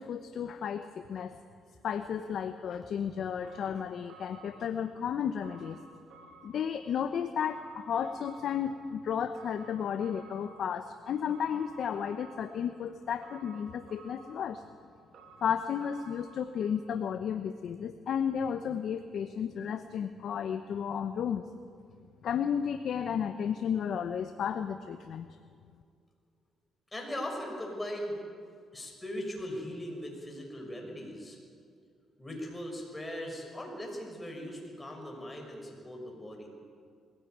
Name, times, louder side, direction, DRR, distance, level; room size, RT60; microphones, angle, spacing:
voice 1, 0.0-1.3 1.8-5.8 6.4-14.6 15.4-21.4 22.2-25.3, left 8 dB, 65° left, 8 dB, 0.9 m, -33 dB
sound 1, 3.4-16.7, right 3 dB, 70° right, 2.6 m, -55 dB
voice 2, 26.9-28.2 28.7-31.4 32.2-36.5, equal, 15° left, 0 dB, 6.0 m, -39 dB
21.0 x 16.0 x 9.3 m, 2.2 s
cardioid pair, 90°, 0 cm